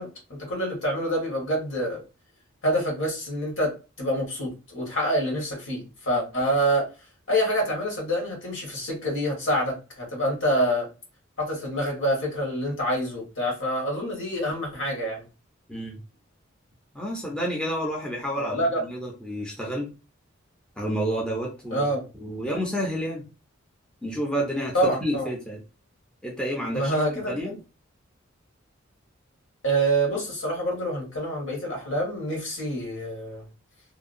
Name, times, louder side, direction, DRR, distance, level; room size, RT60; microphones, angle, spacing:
voice 1, 0.0-2.0 2.6-3.7 4.0-6.9 7.3-10.9 11.4-15.2 18.4-18.8 21.7-22.0 24.7-25.3 26.7-27.5 29.6-33.4, right 1 dB, 65° left, 1.4 m, -26 dB
voice 2, 16.9-19.9 20.8-21.9 22.1-23.2 24.0-25.6 26.2-27.6, equal, 5° left, 0.5 m, -30 dB
2.7 x 2.2 x 2.5 m
head